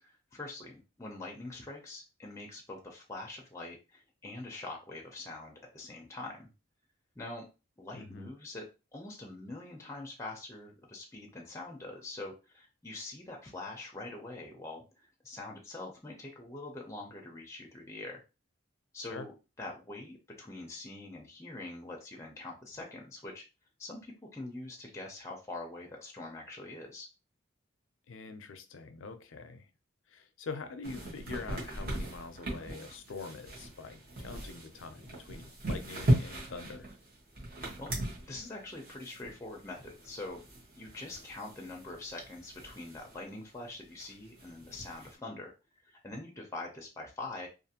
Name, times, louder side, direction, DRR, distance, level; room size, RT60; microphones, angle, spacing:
voice 1, 0.0-6.5 7.2-7.4 7.8-18.2 18.9-23.4 23.8-27.1 37.8-38.0 38.3-40.4 40.8-45.5 45.8-47.5, left 2 dB, 15° left, 0.5 m, -44 dB
voice 2, 7.9-8.3 19.1-19.3 28.1-29.7 30.1-36.9, left 4 dB, 75° left, 0.5 m, -44 dB
sound 1, 30.8-43.2 43.5-43.6 43.8-45.1, right 1 dB, 45° right, 0.9 m, -37 dB
2.5 x 2.5 x 2.8 m
head